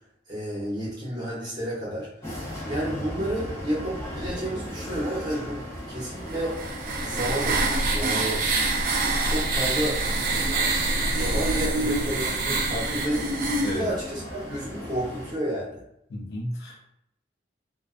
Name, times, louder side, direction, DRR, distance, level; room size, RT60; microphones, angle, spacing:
voice 1, 0.3-2.1 2.7-6.6 7.0-8.4 9.2-10.0 10.3-10.6 11.0-13.3 13.7-15.8, right 1 dB, 25° right, -7 dB, 0.8 m, -31 dB
sound 1, 2.2-15.3, left 1 dB, 15° left, 0.5 m, -37 dB
sound 2, 6.3-13.8, right 3 dB, 50° right, 0.4 m, -26 dB
voice 2, 16.1-16.9, left 1 dB, 70° left, 0 dB, 0.5 m, -33 dB
2.3 x 2.2 x 2.4 m, 0.77 s
head